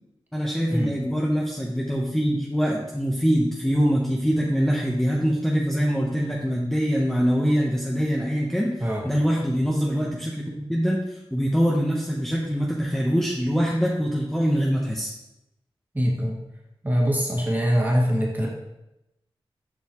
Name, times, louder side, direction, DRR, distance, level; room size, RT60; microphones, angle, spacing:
voice 1, 0.3-8.8 9.0-15.1, equal, 5° left, -3 dB, 0.9 m, -24 dB
voice 2, 15.9-16.4 16.8-18.5, equal, 20° right, -2 dB, 1.9 m, -23 dB
7.5 x 5.4 x 3.0 m, 0.90 s
cardioid pair, 60°, 10 cm